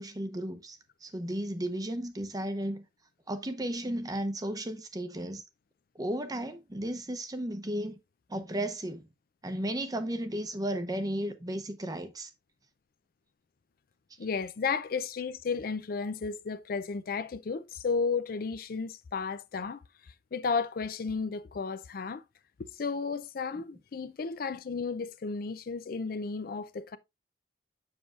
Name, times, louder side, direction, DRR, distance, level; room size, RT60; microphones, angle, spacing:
voice 1, 0.0-2.8 3.3-5.4 5.9-8.0 8.3-9.1 9.4-12.3 23.5-23.6, right 1 dB, 20° right, 0.7 m, -34 dB
voice 2, 14.2-19.8 20.3-22.2 22.6-27.0, left 5 dB, 55° left, 0.4 m, -33 dB
7.3 x 6.1 x 2.4 m
head